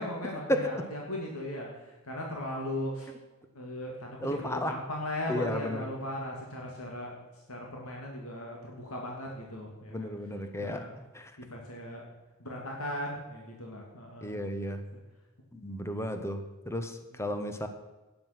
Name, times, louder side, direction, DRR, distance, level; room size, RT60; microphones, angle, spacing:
voice 1, 0.0-3.1 3.5-7.1 7.5-10.1 10.6-10.9 11.4-12.0 12.4-14.3, left 1 dB, 80° left, -1 dB, 2.5 m, -38 dB
voice 2, 4.2-4.7 5.3-5.8 9.9-11.3 14.2-14.8 15.5-17.7, equal, 10° left, 7 dB, 1.1 m, -33 dB
12.0 x 9.9 x 6.0 m, 1.1 s
head